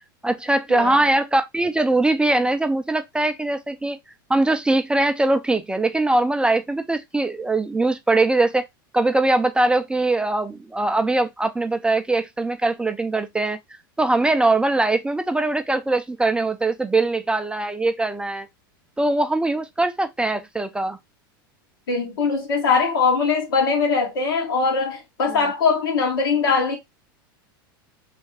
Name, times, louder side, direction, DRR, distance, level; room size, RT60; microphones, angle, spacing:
voice 1, 0.2-4.0 4.3-8.7 8.9-13.6 14.0-18.5 19.0-21.0, right 2 dB, 10° right, 0.3 m, -21 dB
voice 2, 21.9-26.8, left 5 dB, 80° left, 1.6 m, -21 dB
3.2 x 2.4 x 3.2 m
hypercardioid pair, 105°, 12 cm